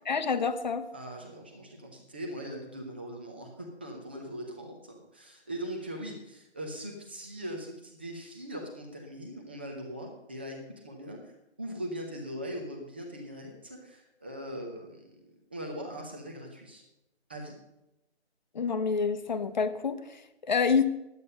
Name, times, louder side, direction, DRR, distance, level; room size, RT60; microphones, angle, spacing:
voice 1, 0.0-0.9 18.5-20.9, left 5 dB, 40° left, 10 dB, 0.9 m, -28 dB
voice 2, 0.9-15.0 15.5-16.8 17.3-17.6, equal, 10° right, 1 dB, 0.6 m, -40 dB
10.5 x 8.5 x 6.6 m, 0.93 s
hypercardioid pair, 165°, 33 cm